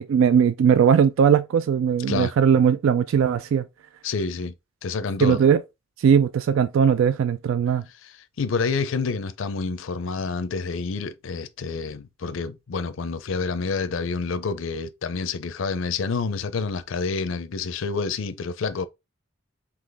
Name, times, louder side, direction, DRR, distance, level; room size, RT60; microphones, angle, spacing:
voice 1, 0.0-3.6 5.2-5.6 6.0-7.8, right 7 dB, 75° right, 0.3 m, -19 dB
voice 2, 4.0-4.5 4.8-5.4 8.0-18.9, left 4 dB, 70° left, 0.5 m, -28 dB
3.9 x 2.9 x 3.4 m
head